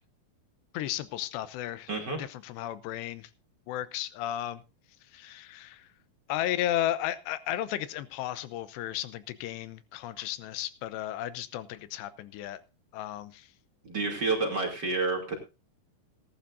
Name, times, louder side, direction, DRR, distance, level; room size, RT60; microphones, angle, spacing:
voice 1, 0.7-1.9 2.2-3.3 3.7-4.6 5.1-5.9 6.3-12.6 12.9-13.5, left 13 dB, 85° left, 14 dB, 3.1 m, -34 dB
voice 2, 1.9-2.2 13.8-15.4, right 3 dB, 30° right, 1 dB, 2.9 m, -29 dB
18.5 x 11.5 x 2.6 m, 0.29 s
omnidirectional pair, 4.9 m